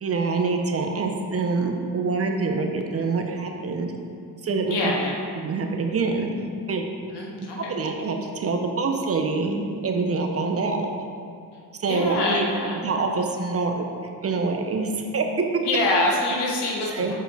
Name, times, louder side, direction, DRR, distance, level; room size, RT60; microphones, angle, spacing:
voice 1, 0.0-3.9 4.4-4.8 5.4-6.3 6.7-6.9 7.4-10.9 11.7-12.4 12.8-13.8 14.2-15.3 16.9-17.1, right 4 dB, 35° right, 3 dB, 0.6 m, -25 dB
voice 2, 4.7-5.2 7.1-7.7 11.8-12.8 15.6-17.1, left 2 dB, 70° left, -2 dB, 1.4 m, -25 dB
7.0 x 4.3 x 4.0 m, 2.5 s
cardioid pair, 95°, 42 cm